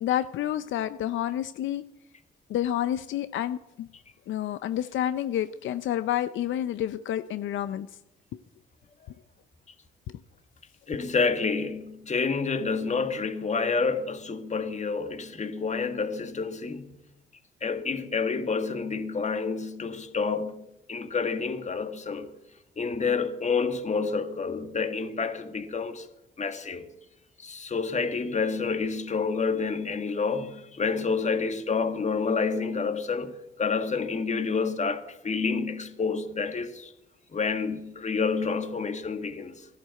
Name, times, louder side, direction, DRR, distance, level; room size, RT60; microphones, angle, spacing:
voice 1, 0.0-1.8 2.5-3.9 4.3-7.9, left 11 dB, 75° left, 0.6 m, -29 dB
voice 2, 10.9-17.0 17.6-20.5 20.9-22.3 22.8-26.1 26.4-26.9 27.4-36.9 37.3-39.7, left 5 dB, 35° left, 1.8 m, -29 dB
15.5 x 11.5 x 7.8 m
cardioid pair, 90°, 20 cm